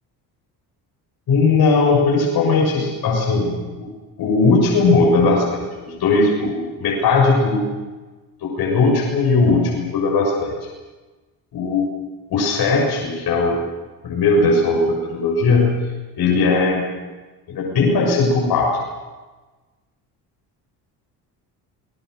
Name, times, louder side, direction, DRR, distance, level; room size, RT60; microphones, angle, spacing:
voice 1, 1.3-3.9 4.2-7.7 8.4-10.6 11.5-11.9 12.3-13.6 14.0-15.8 16.1-16.9 17.5-18.8, left 3 dB, 65° left, -2 dB, 7.1 m, -18 dB
28.0 x 21.5 x 6.7 m, 1.2 s
cardioid pair, 90°, 40 cm